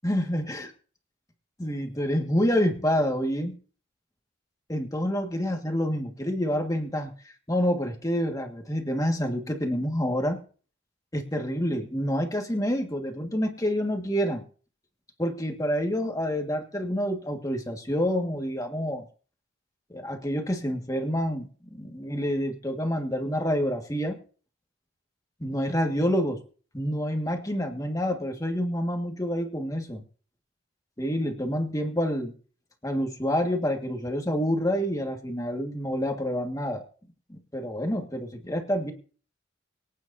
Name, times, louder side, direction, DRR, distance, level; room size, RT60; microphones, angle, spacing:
voice 1, 0.0-0.7 1.6-3.6 4.7-7.1 7.5-10.4 11.1-14.4 15.2-19.1 19.9-24.2 25.4-26.4 26.7-30.0 31.0-32.3 32.8-36.8 37.3-38.9, equal, 15° left, 3 dB, 1.7 m, -28 dB
24.5 x 9.2 x 2.7 m, 0.41 s
head